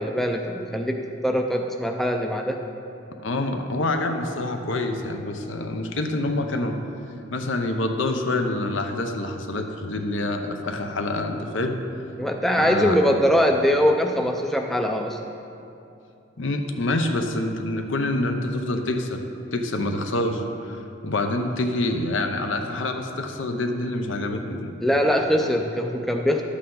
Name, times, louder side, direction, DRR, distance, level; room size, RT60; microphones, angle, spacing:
voice 1, 0.0-2.6 12.2-15.2 24.8-26.4, equal, ahead, 2 dB, 0.4 m, -22 dB
voice 2, 3.2-6.8 7.3-11.8 12.6-13.0 16.4-19.2 19.5-24.7, left 2 dB, 70° left, 5 dB, 0.7 m, -26 dB
11.5 x 8.3 x 3.8 m, 2.8 s
head